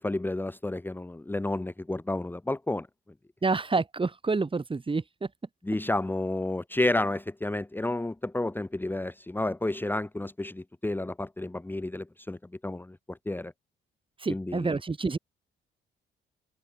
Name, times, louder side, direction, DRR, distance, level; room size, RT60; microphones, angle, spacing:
voice 1, 0.0-2.9 5.6-12.4 12.6-13.5 14.3-14.7, left 2 dB, 10° left, 1.4 m, -31 dB
voice 2, 3.4-5.3 14.2-15.2, right 4 dB, 25° right, 4.5 m, -28 dB
cardioid pair, 90°, 20 cm